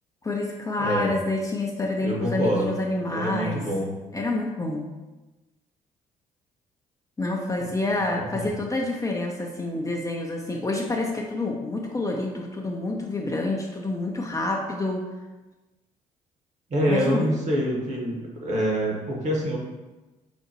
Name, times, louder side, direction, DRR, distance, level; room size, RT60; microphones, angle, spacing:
voice 1, 0.2-3.6 4.1-4.8 7.2-15.0 16.9-17.4, left 2 dB, 20° left, 0 dB, 0.5 m, -28 dB
voice 2, 0.8-1.2 2.0-2.8 3.1-3.9 7.9-8.5 16.7-19.6, equal, 40° right, -1 dB, 1.1 m, -26 dB
5.0 x 2.1 x 2.8 m, 1.1 s
hypercardioid pair, 50°, 18 cm